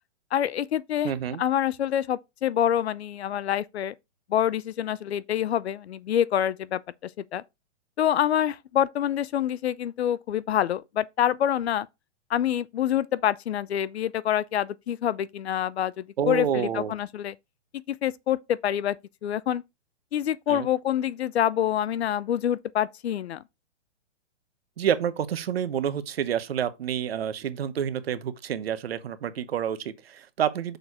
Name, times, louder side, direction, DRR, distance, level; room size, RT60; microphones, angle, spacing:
voice 1, 0.3-1.1 1.4-3.9 4.3-6.8 7.3-7.4 8.0-11.9 12.3-17.3 18.0-19.0 19.2-19.6 20.1-23.4, left 10 dB, 65° left, 0.6 m, -26 dB
voice 2, 1.0-1.4 16.2-16.9 20.5-20.7 24.8-30.8, right 9 dB, 55° right, 1.0 m, -28 dB
6.5 x 4.5 x 4.7 m
hypercardioid pair, 175°, 35 cm